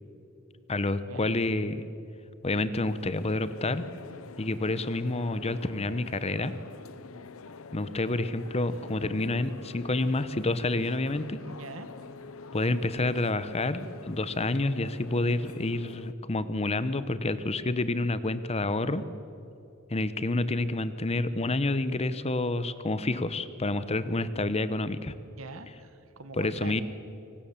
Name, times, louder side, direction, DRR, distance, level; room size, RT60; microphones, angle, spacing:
voice 1, 0.7-1.8 2.4-3.8 4.4-6.5 7.7-11.4 12.5-19.0 19.9-25.1 26.4-26.8, left 2 dB, 30° left, 14 dB, 0.9 m, -28 dB
sound 1, 2.7-16.1, left 4 dB, 70° left, 0.8 m, -46 dB
voice 2, 11.4-12.0 25.4-26.8, right 3 dB, 70° right, 11 dB, 1.5 m, -43 dB
23.5 x 19.0 x 7.2 m, 2.8 s
head